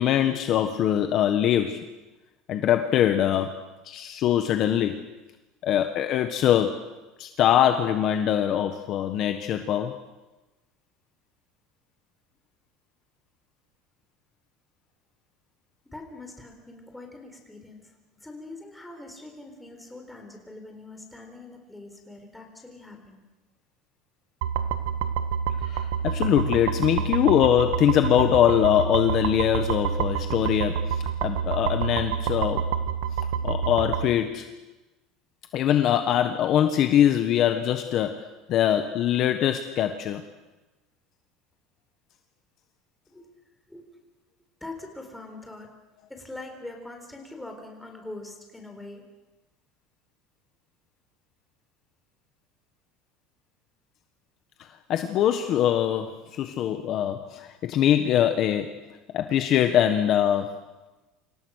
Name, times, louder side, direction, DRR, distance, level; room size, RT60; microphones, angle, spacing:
voice 1, 0.0-1.9 2.5-3.5 3.8-5.0 5.6-6.8 7.2-10.0 25.6-32.7 33.4-34.5 35.5-40.2 54.9-58.8 59.1-60.6, left 10 dB, 40° left, 7 dB, 1.4 m, -23 dB
voice 2, 15.8-17.9 18.2-23.2 43.1-43.3 43.7-43.9 44.6-45.7 46.1-49.0, left 2 dB, 5° left, 3 dB, 4.2 m, -43 dB
sound 1, 24.4-34.1, right 7 dB, 85° right, 1.7 m, -28 dB
29.0 x 27.0 x 6.6 m, 1.1 s
cardioid pair, 165°, 0 cm